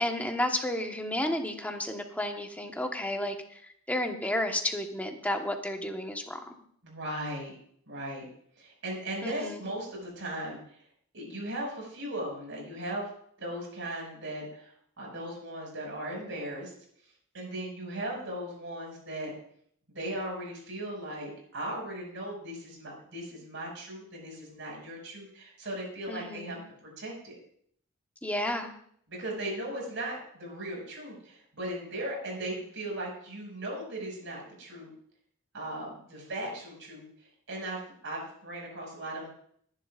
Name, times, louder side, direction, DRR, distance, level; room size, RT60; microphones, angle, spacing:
voice 1, 0.0-3.6 3.9-6.5 9.2-9.6 26.1-26.6 28.2-28.7, left 1 dB, 5° left, 3 dB, 1.2 m, -32 dB
voice 2, 6.8-7.6 7.9-8.2 8.6-10.8 11.1-13.1 13.4-16.7 17.3-19.3 19.9-26.6 27.0-27.4 29.1-34.9 35.5-39.3, right 1 dB, 60° right, 0 dB, 5.9 m, -37 dB
21.0 x 10.5 x 2.5 m, 0.64 s
head